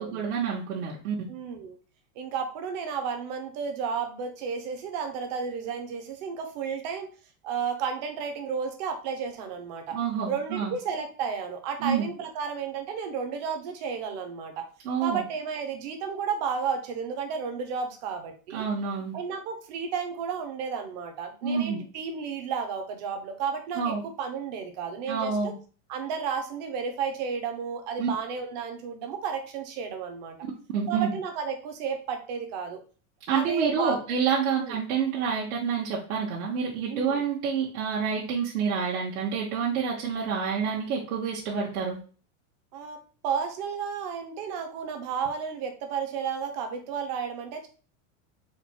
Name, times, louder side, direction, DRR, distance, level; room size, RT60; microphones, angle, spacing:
voice 1, 0.0-1.1 9.9-10.7 11.8-12.1 14.8-15.2 18.5-19.1 21.4-21.8 23.8-24.0 25.1-25.5 28.0-28.1 30.7-31.1 33.3-42.0, right 6 dB, 80° right, -4 dB, 1.2 m, -28 dB
voice 2, 1.3-1.8 2.2-7.1 7.4-10.0 10.3-14.6 15.0-18.7 19.1-25.5 25.9-30.4 30.9-32.8 33.3-34.0 34.6-34.8 36.9-37.2 42.7-47.7, right 6 dB, 30° right, 5 dB, 0.5 m, -32 dB
4.3 x 2.1 x 4.4 m, 0.39 s
supercardioid pair, 180°, 43 cm